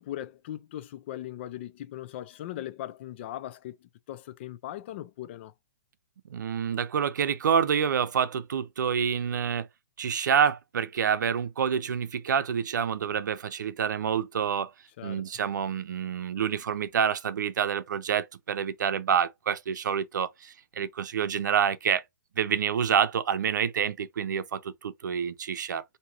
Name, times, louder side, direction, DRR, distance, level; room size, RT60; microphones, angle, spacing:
voice 1, 0.0-5.5 15.0-15.3, left 13 dB, 40° left, 0.5 m, -39 dB
voice 2, 6.3-9.7 10.0-14.7 15.0-22.0 22.4-25.8, right 7 dB, 75° right, 0.6 m, -27 dB
4.7 x 2.8 x 2.9 m
hypercardioid pair, 155°, 10 cm